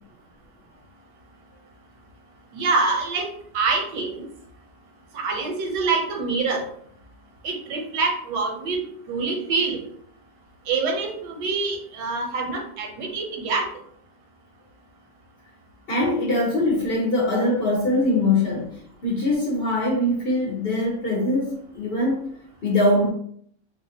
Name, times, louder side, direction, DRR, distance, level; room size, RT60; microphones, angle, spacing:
voice 1, 2.5-4.3 5.1-6.6 7.4-8.8 9.1-9.8 10.7-13.7, right 4 dB, 80° right, 1.4 m, -25 dB
voice 2, 15.9-18.7 19.0-22.3 22.6-23.1, left 1 dB, 50° left, 0.7 m, -22 dB
4.0 x 2.5 x 2.8 m
omnidirectional pair, 1.8 m